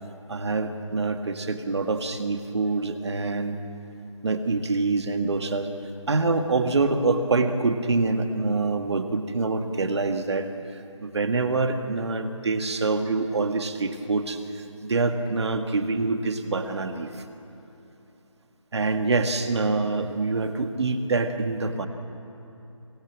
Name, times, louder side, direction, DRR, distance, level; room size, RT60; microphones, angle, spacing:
voice 1, 0.3-3.6 4.2-5.7 6.1-10.5 11.0-17.1 18.7-21.9, right 3 dB, 55° right, 6 dB, 2.0 m, -25 dB
24.0 x 22.0 x 7.6 m, 3.0 s
figure-of-eight pair, 170°, 17 cm